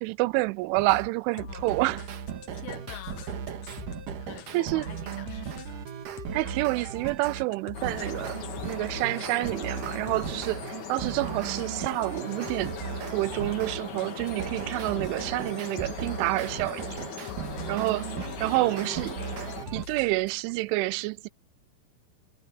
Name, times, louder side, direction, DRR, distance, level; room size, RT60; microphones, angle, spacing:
voice 1, 0.0-2.0 4.5-4.9 6.3-8.4 8.7-12.8 13.1-17.0 17.7-18.1 18.4-19.2 19.7-21.3, right 21 dB, 85° right, 3.0 m, -28 dB
sound 1, 0.8-1.1 1.5-7.4 7.8-13.8 14.2-19.9, right 8 dB, 55° right, 2.7 m, -37 dB
voice 2, 1.3-1.7 2.5-3.4 3.8-5.9 17.3-18.0 18.3-19.1, left 15 dB, 85° left, 3.2 m, -47 dB
sound 2, 1.4-20.5, left 8 dB, 65° left, 2.2 m, -46 dB
sound 3, 7.7-19.7, left 6 dB, 45° left, 3.4 m, -40 dB
omnidirectional pair, 5.5 m